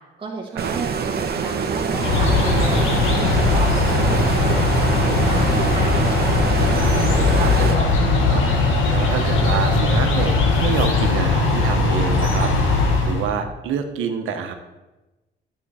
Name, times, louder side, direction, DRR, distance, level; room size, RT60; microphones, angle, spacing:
voice 1, 0.2-3.7 4.0-6.0, right 3 dB, 25° right, -5 dB, 1.8 m, -33 dB
Stream, 0.6-7.8, right 5 dB, 50° right, 1.0 m, -25 dB
sound 1, 1.9-13.3, left 3 dB, 85° left, 1.7 m, -19 dB
sound 2, 2.0-11.1, left 3 dB, 20° left, 2.4 m, -35 dB
voice 2, 6.7-12.5 13.0-14.5, right 7 dB, 90° right, 6 dB, 1.1 m, -28 dB
10.0 x 8.4 x 4.2 m, 1.1 s
cardioid pair, 90°, 20 cm